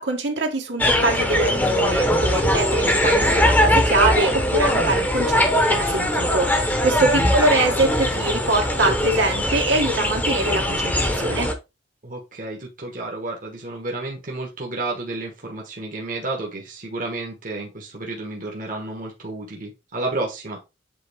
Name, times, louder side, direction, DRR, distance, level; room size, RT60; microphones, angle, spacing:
voice 1, 0.0-11.5, right 2 dB, 65° right, 2 dB, 1.7 m, -23 dB
sound 1, 0.8-11.5, left 1 dB, 10° left, 1.0 m, -21 dB
voice 2, 7.0-7.3 12.0-20.6, right 2 dB, 45° right, 0 dB, 1.4 m, -31 dB
7.8 x 3.7 x 3.5 m, 0.25 s
head